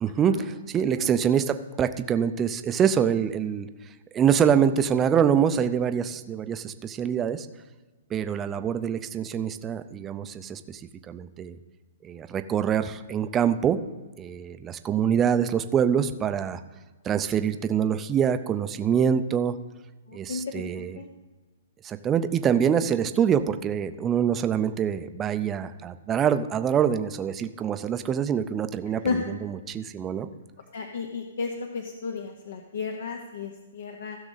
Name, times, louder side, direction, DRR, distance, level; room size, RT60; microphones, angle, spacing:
voice 1, 0.0-3.7 4.1-7.5 8.1-10.8 11.1-11.6 12.0-13.8 14.2-16.6 17.0-19.6 20.1-21.0 21.8-30.3, right 8 dB, 15° right, 10 dB, 0.4 m, -25 dB
voice 2, 20.1-21.1 29.0-29.2 30.7-34.2, left 5 dB, 70° left, 4 dB, 0.9 m, -33 dB
15.5 x 6.2 x 4.0 m, 1.2 s
hypercardioid pair, 155°, 0 cm